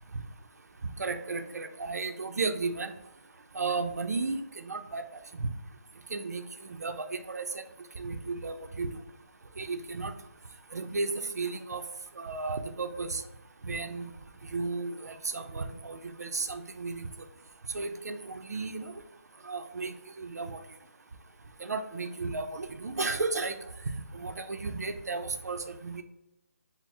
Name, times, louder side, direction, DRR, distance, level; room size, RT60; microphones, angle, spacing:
voice 1, 1.0-2.9 3.5-5.0 5.3-5.5 6.1-6.4 6.8-7.5 8.0-8.9 9.6-10.1 10.7-11.8 12.2-13.2 13.6-14.1 14.5-17.1 17.7-18.9 19.5-20.6 21.6-23.5 24.1-26.0, right 3 dB, 90° right, 7 dB, 0.5 m, -34 dB
4.3 x 2.0 x 3.5 m, 0.92 s
hypercardioid pair, 180°, 8 cm